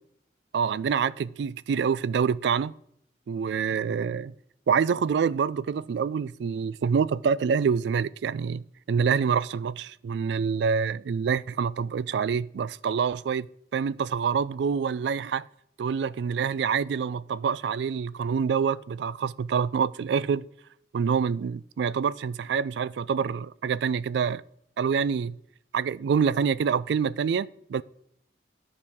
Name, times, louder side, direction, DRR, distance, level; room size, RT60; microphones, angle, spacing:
voice 1, 0.5-2.7 3.3-4.3 4.7-13.5 13.7-15.4 15.8-20.4 20.9-24.4 24.8-25.4 25.7-27.8, right 6 dB, 70° right, 0.3 m, -26 dB
13.0 x 4.9 x 3.5 m
head